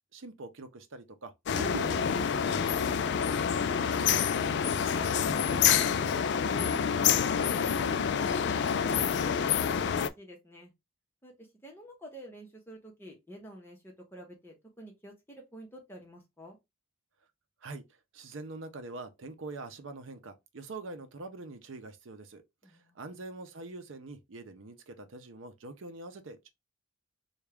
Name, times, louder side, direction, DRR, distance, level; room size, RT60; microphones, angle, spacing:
voice 1, 0.1-3.3 17.6-17.8 18.1-26.5, right 3 dB, 70° right, 0.6 m, -44 dB
sound 1, 1.5-10.1, left 7 dB, 55° left, 0.3 m, -27 dB
voice 2, 3.6-4.3 4.6-7.3 7.7-10.7 11.2-16.6 22.6-23.0, right 1 dB, 10° left, 1.0 m, -49 dB
3.5 x 2.3 x 3.4 m
head